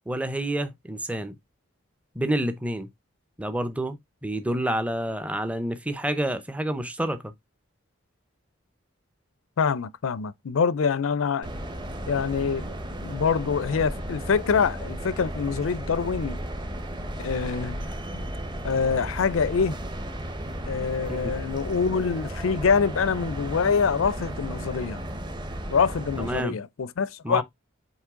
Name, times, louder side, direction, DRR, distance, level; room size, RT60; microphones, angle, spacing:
voice 1, 0.1-1.4 2.1-2.9 3.4-4.0 4.2-7.3 21.1-21.3 26.2-26.6 27.2-27.4, right 1 dB, 5° right, 0.7 m, -28 dB
voice 2, 9.6-11.5 12.1-12.7 13.0-16.4 17.2-17.9 18.1-18.3 18.6-19.8 20.7-25.0 25.7-27.4, left 6 dB, 85° left, 0.5 m, -25 dB
sound 1, 11.4-26.4, right 1 dB, 20° right, 1.0 m, -34 dB
8.0 x 3.2 x 3.6 m
head